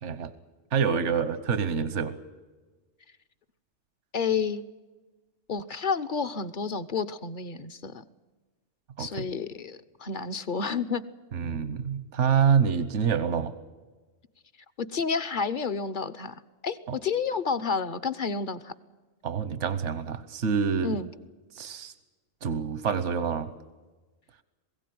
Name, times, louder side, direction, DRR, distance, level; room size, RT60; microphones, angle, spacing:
voice 1, 0.7-2.1 9.0-9.3 11.3-13.5 16.9-17.0 19.2-21.0 21.5-21.9 22.4-23.5, right 6 dB, 85° right, 13 dB, 1.3 m, -26 dB
voice 2, 4.1-4.6 5.5-8.0 9.0-11.0 14.9-16.4 16.6-18.7 20.8-21.1, left 5 dB, 45° left, 11 dB, 1.0 m, -30 dB
22.0 x 16.5 x 9.4 m, 1.3 s
omnidirectional pair, 1.2 m